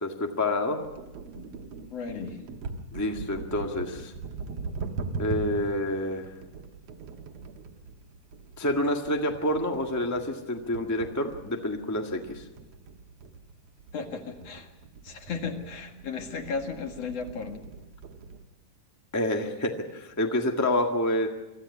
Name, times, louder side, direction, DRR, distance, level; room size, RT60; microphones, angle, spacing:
voice 1, 0.0-0.8 2.9-4.1 5.2-6.3 8.6-12.4 19.1-21.3, left 1 dB, 20° left, 3 dB, 0.4 m, -28 dB
sound 1, 0.8-18.4, right 4 dB, 60° right, 2.1 m, -41 dB
voice 2, 1.9-2.4 13.9-14.7 15.0-17.6, left 5 dB, 55° left, 4 dB, 2.7 m, -35 dB
25.0 x 14.0 x 9.6 m, 1.1 s
omnidirectional pair, 3.9 m